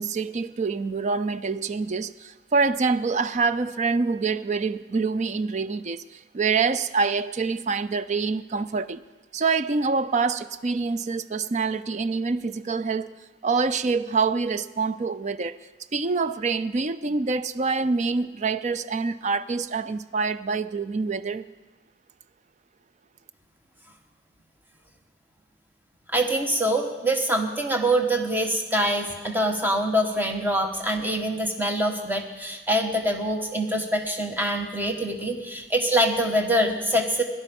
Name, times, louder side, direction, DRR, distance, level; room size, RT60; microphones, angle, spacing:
voice 1, 0.0-9.0 9.3-13.1 13.4-15.6 15.9-21.5, right 4 dB, 40° right, 0.5 m, -26 dB
voice 2, 26.1-37.2, right 1 dB, 10° right, 1.3 m, -24 dB
17.0 x 11.5 x 5.3 m
head